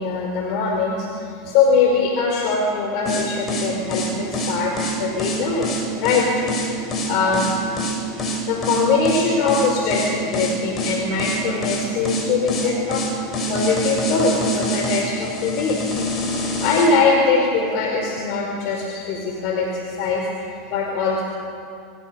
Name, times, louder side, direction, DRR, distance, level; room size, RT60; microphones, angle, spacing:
voice 1, 0.0-5.7 5.9-7.6 8.5-13.0 13.5-15.8 16.3-20.2 20.5-21.2, left 4 dB, 60° left, 0 dB, 5.2 m, -22 dB
sound 1, 3.1-16.9, equal, 35° left, 7.2 m, -25 dB
26.5 x 23.0 x 7.2 m, 2.4 s
hypercardioid pair, 100°, 0 cm